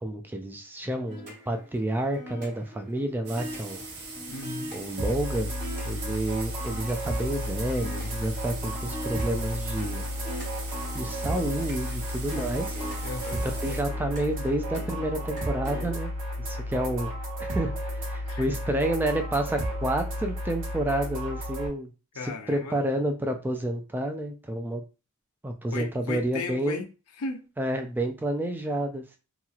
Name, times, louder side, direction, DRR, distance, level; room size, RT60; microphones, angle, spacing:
voice 1, 0.0-3.8 4.7-5.5 5.8-10.0 10.9-12.8 13.4-16.1 16.4-17.1 17.4-21.9 22.2-24.8 25.4-26.8 27.6-29.2, right 1 dB, 10° right, 0.3 m, -30 dB
sound 1, 1.0-15.9, left 1 dB, 35° right, 1.1 m, -43 dB
sound 2, 3.3-13.8, right 3 dB, 80° right, 0.9 m, -42 dB
voice 2, 4.3-4.7 13.0-13.4 18.3-18.6 22.1-22.8 25.7-26.9 27.2-27.5, left 3 dB, 90° left, 0.6 m, -36 dB
sound 3, 5.0-21.7, equal, 60° right, 1.1 m, -33 dB
3.0 x 2.8 x 2.4 m
head